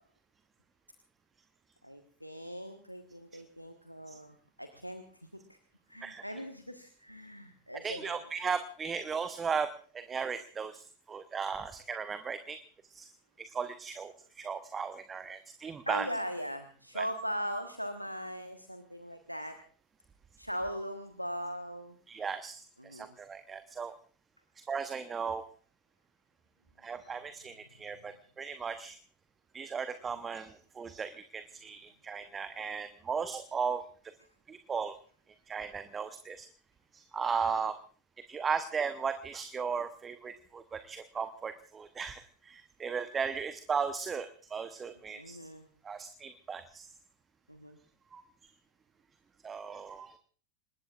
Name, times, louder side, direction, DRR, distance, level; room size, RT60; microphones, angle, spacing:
voice 1, 1.8-5.6 5.9-8.2 15.9-19.6 20.4-22.0 22.8-23.2 45.2-45.7 47.5-47.8, equal, 90° left, 7 dB, 1.3 m, -40 dB
voice 2, 7.8-9.7 9.9-12.6 12.9-13.1 13.4-16.1 17.0-17.1 22.1-23.9 24.7-25.5 26.8-29.0 29.5-33.8 34.5-35.0 35.5-36.5 36.9-37.8 38.3-45.4 45.8-46.9 48.1-48.2 49.4-50.1, right 6 dB, 20° right, 11 dB, 0.9 m, -36 dB
26.5 x 20.5 x 2.5 m, 0.42 s
figure-of-eight pair, 90°, 0 cm